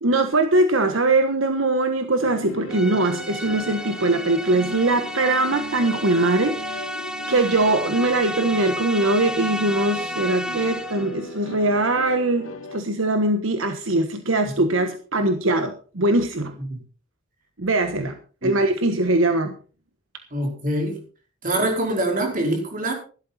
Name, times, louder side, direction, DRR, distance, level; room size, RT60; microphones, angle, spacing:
voice 1, 0.0-6.9 7.3-16.6 17.6-18.1 18.4-19.5, right 2 dB, 65° right, 7 dB, 1.4 m, -21 dB
sound 1, 2.2-12.8, left 1 dB, 70° left, 1.5 m, -38 dB
sound 2, 2.7-11.2, equal, 5° right, 1.2 m, -32 dB
voice 2, 20.3-21.0 21.4-22.9, right 1 dB, 40° right, 2 dB, 4.9 m, -24 dB
15.5 x 12.5 x 4.3 m, 0.39 s
head